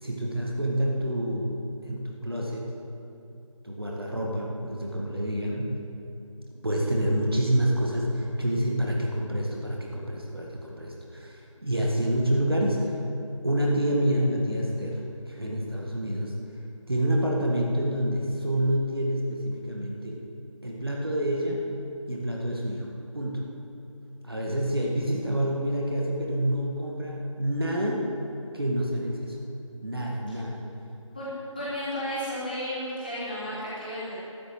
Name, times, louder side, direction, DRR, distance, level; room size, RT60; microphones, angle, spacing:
voice 1, 0.0-1.5 1.8-2.7 3.6-5.8 6.6-13.0 13.4-16.3 16.9-20.2 20.6-21.6 22.1-22.9 23.1-23.5 24.2-28.1 28.5-29.4 29.8-30.6, right 1 dB, 45° right, -2 dB, 1.8 m, -27 dB
voice 2, 31.1-34.1, equal, 15° left, -11 dB, 2.5 m, -33 dB
12.5 x 7.0 x 8.6 m, 2.8 s
figure-of-eight pair, 175°, 17 cm